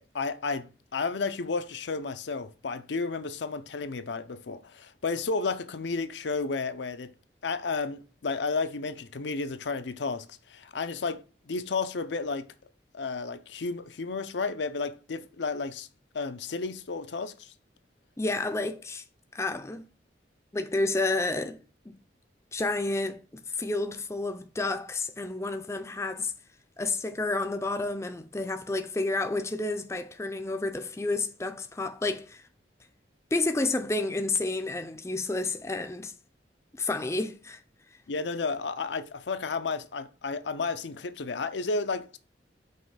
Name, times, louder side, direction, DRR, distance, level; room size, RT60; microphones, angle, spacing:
voice 1, 0.0-7.1 7.4-12.5 12.9-15.9 16.1-17.5 38.1-42.2, left 4 dB, 80° left, 0.6 m, -32 dB
voice 2, 18.2-19.0 19.3-19.9 20.5-21.6 21.9-22.0 22.5-26.3 26.8-32.4 33.3-36.1 36.8-37.6, left 2 dB, 15° left, 0.4 m, -30 dB
5.5 x 3.1 x 5.6 m
head